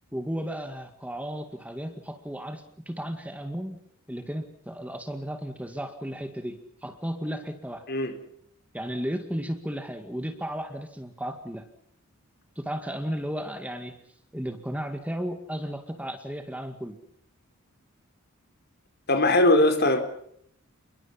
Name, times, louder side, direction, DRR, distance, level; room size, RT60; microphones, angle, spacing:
voice 1, 0.1-3.8 4.1-7.8 8.7-11.7 12.6-14.0 14.3-17.0, equal, 5° right, 2.0 m, -34 dB
voice 2, 19.1-20.0, left 1 dB, 50° left, 4.4 m, -20 dB
28.5 x 22.0 x 5.7 m
head